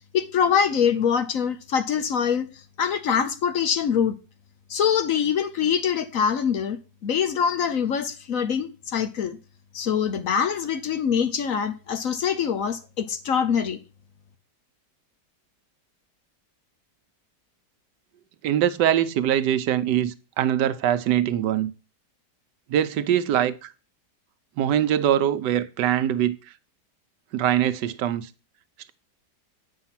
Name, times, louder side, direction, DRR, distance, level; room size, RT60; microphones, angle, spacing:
voice 1, 0.1-2.5 2.8-4.1 4.7-9.4 9.7-13.8, left 7 dB, 60° left, 1.1 m, -24 dB
voice 2, 18.4-21.7 22.7-23.7 24.6-26.4 27.3-28.3, right 10 dB, 85° right, 1.3 m, -23 dB
8.9 x 5.6 x 5.7 m
omnidirectional pair, 1.8 m